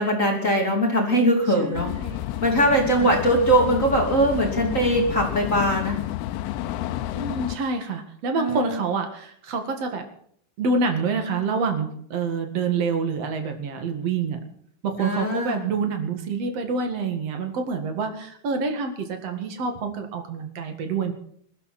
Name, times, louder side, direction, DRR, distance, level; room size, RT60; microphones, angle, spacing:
voice 1, 0.0-1.9 2.4-6.1 8.4-8.8 15.0-15.6, right 1 dB, 20° left, 0 dB, 2.1 m, -21 dB
voice 2, 1.6-2.2 2.6-3.1 7.1-10.0 10.6-14.4 14.8-21.1, right 4 dB, 55° right, 5 dB, 1.8 m, -27 dB
sound 1, 1.7-7.6, left 13 dB, 85° left, 3.5 m, -30 dB
21.0 x 14.0 x 4.3 m, 0.63 s
omnidirectional pair, 5.8 m